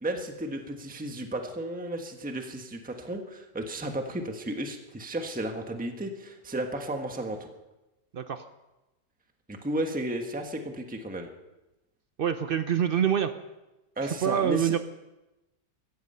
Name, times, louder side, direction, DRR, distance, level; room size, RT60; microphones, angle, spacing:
voice 1, 0.0-7.4 9.5-11.3 14.0-14.8, right 1 dB, 5° right, 4 dB, 1.2 m, -33 dB
voice 2, 8.1-8.4 12.2-13.3 14.0-14.8, right 9 dB, 80° right, 9 dB, 0.5 m, -26 dB
16.5 x 14.5 x 5.6 m, 1.0 s
omnidirectional pair, 1.9 m